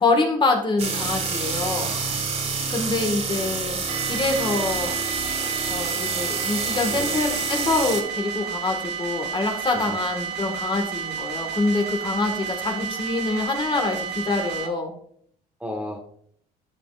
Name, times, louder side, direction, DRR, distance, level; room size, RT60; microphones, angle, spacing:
voice 1, 0.0-1.9 2.7-3.8 4.0-5.0 5.7-14.9, left 3 dB, 30° left, 3 dB, 1.7 m, -25 dB
sound 1, 0.8-8.0, right 4 dB, 40° right, 1.6 m, -28 dB
voice 2, 1.8-2.7 6.9-7.2 9.7-10.0 15.6-16.0, left 1 dB, 5° right, 3 dB, 1.4 m, -36 dB
sound 2, 3.9-14.7, right 7 dB, 85° right, 0.9 m, -31 dB
13.0 x 5.3 x 2.5 m, 0.62 s
cardioid pair, 110°, 17 cm